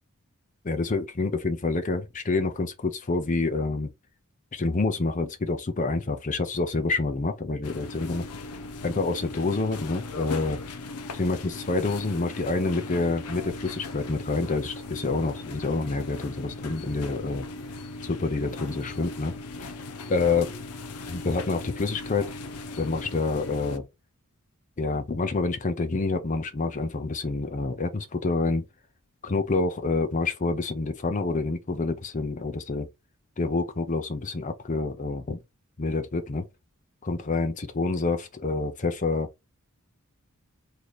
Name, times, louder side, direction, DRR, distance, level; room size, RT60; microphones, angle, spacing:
voice 1, 0.6-3.9 4.5-8.3 8.8-10.6 11.1-17.5 18.0-19.3 19.6-19.7 20.1-20.5 21.1-22.3 22.8-23.8 24.8-28.6 29.2-32.9 33.4-35.4 35.8-36.4 37.0-39.3, left 3 dB, 35° left, 0.6 m, -27 dB
sound 1, 7.6-23.8, left 3 dB, 85° left, 0.5 m, -38 dB
3.2 x 2.8 x 4.0 m
head